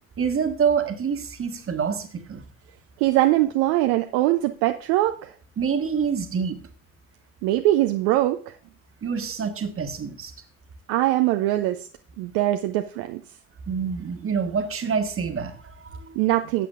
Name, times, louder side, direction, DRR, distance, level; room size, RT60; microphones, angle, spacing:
voice 1, 0.2-2.4 5.6-6.6 9.0-10.3 13.7-16.2, right 6 dB, 35° right, 7 dB, 1.6 m, -26 dB
voice 2, 3.0-5.3 7.4-8.5 10.9-11.9 12.2-13.2 16.2-16.7, right 15 dB, 60° right, 7 dB, 0.7 m, -22 dB
15.0 x 8.2 x 2.5 m, 0.44 s
figure-of-eight pair, 45°, 39 cm